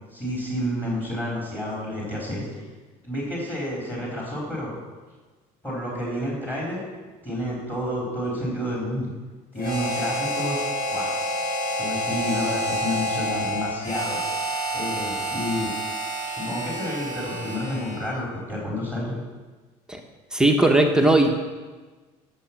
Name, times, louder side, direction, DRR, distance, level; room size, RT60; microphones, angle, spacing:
voice 1, 0.1-2.6 3.0-4.8 5.6-6.8 7.2-9.1 9.5-11.2 11.8-14.2 14.7-15.7 16.3-19.2, equal, 10° left, -5 dB, 4.2 m, -30 dB
Harmonica, 9.6-18.2, equal, 75° left, 3.3 m, -28 dB
voice 2, 20.3-21.3, right 2 dB, 5° right, 2 dB, 1.1 m, -18 dB
11.0 x 7.3 x 6.0 m, 1.3 s
supercardioid pair, 100°, 15 cm